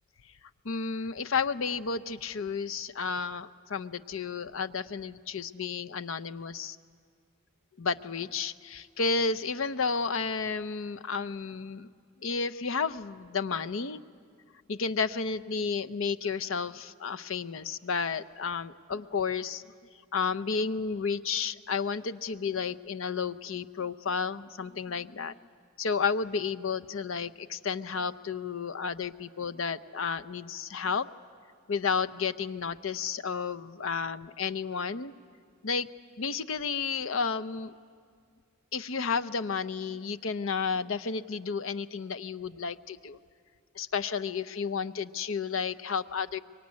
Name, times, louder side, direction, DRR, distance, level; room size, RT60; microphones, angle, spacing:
voice 1, 0.6-6.8 7.8-11.9 12.2-14.0 14.7-19.6 20.1-25.3 25.8-31.1 31.7-35.1 35.6-35.9 36.2-37.7 38.7-43.2 43.7-46.4, left 5 dB, 65° left, 11 dB, 0.7 m, -32 dB
25.0 x 23.0 x 9.6 m, 2.1 s
head